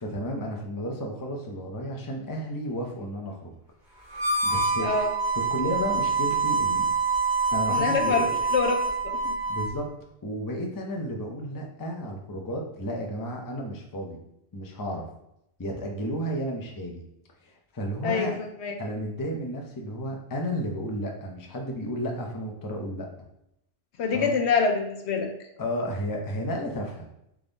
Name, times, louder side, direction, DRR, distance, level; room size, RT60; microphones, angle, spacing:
voice 1, 0.0-3.5 4.4-4.9 5.5-6.9 7.5-8.3 9.5-9.9 10.2-14.2 14.5-15.0 15.6-17.0 17.4-18.3 18.8-23.1 24.1-24.3 25.6-27.1, equal, 25° left, 0 dB, 0.5 m, -32 dB
Harmonica, 4.1-9.8, right 3 dB, 20° right, 1.7 m, -26 dB
voice 2, 4.8-5.1 7.7-9.3 18.0-18.8 24.0-25.3, left 5 dB, 70° left, 4 dB, 0.9 m, -26 dB
3.6 x 3.5 x 4.0 m, 0.79 s
omnidirectional pair, 1.2 m